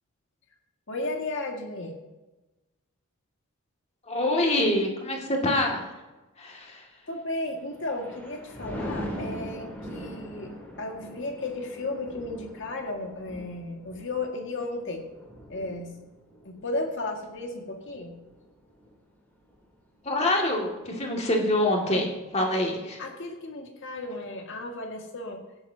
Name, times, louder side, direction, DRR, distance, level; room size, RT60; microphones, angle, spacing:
voice 1, 0.9-2.0 7.1-10.5 10.8-15.0 15.5-16.0 16.4-18.2 23.0-25.4, left 2 dB, 55° left, 2 dB, 2.0 m, -34 dB
voice 2, 4.1-5.8 6.4-6.8 20.0-23.0, left 1 dB, 30° left, 0 dB, 2.2 m, -25 dB
Thunder, 7.5-19.0 19.4-19.7, equal, 10° left, 3.3 m, -41 dB
16.5 x 11.0 x 2.8 m, 1.1 s
head